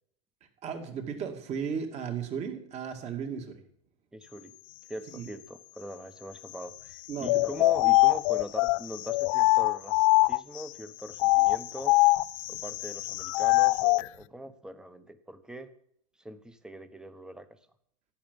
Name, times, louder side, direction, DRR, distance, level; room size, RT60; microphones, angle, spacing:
voice 1, 0.6-3.6 5.1-5.3 7.1-7.5, right 7 dB, 35° right, 5 dB, 2.5 m, -35 dB
voice 2, 4.1-4.5 4.9-10.0 10.3-11.9 12.5-15.7 16.2-17.6, right 1 dB, 5° right, 11 dB, 1.2 m, -42 dB
sound 1, 7.2-10.6 11.1-14.1, left 22 dB, 60° left, 0.5 m, -23 dB
14.5 x 11.0 x 5.4 m, 0.68 s
supercardioid pair, 125°, 19 cm